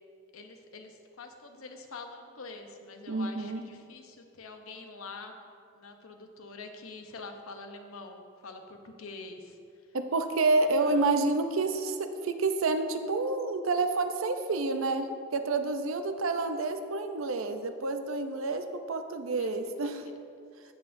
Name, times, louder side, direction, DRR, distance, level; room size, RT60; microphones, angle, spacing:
voice 1, 0.3-5.3 5.7-9.6 10.6-11.2 19.3-19.5 19.8-20.1, left 3 dB, 80° left, 5 dB, 0.8 m, -45 dB
voice 2, 3.1-3.6 9.9-20.0, right 3 dB, 70° right, 8 dB, 0.6 m, -29 dB
15.0 x 5.8 x 2.6 m, 2.4 s
head